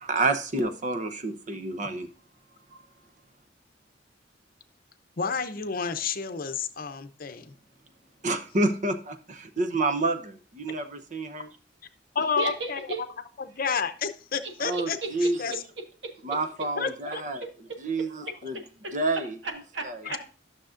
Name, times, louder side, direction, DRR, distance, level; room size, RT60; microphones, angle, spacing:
voice 1, 0.0-2.1 2.7-2.9 8.2-11.5 14.6-15.5 16.2-17.4 17.8-18.6 18.9-19.4 19.8-20.1, right 2 dB, 45° right, 9 dB, 0.8 m, -29 dB
voice 2, 5.2-7.5 12.1-12.8 13.4-15.0 15.4-15.6 16.8-17.2 20.0-20.2, left 6 dB, 50° left, 10 dB, 0.7 m, -30 dB
voice 3, 12.4-13.0 14.7-15.6 16.0-16.1 17.4-17.8 18.3-18.4 18.8-18.9 19.4-20.2, right 3 dB, 70° right, 3 dB, 1.4 m, -35 dB
12.5 x 6.4 x 2.5 m, 0.37 s
head